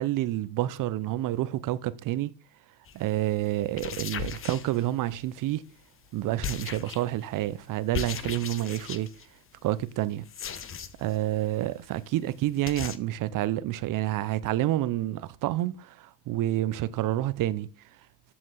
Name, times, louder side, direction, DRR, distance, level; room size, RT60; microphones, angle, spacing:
voice 1, 0.0-2.3 2.9-5.6 6.1-9.1 9.6-10.3 11.0-17.7, right 14 dB, 40° right, 0.9 m, -29 dB
sound 1, 2.9-3.1 3.6-5.2 6.4-7.2 7.9-9.3 10.2-11.2 11.5-11.6 11.9-12.0 12.2-12.3 12.7-13.0, left 7 dB, 25° left, 1.2 m, -36 dB
13.5 x 8.0 x 4.0 m
hypercardioid pair, 95°, 49 cm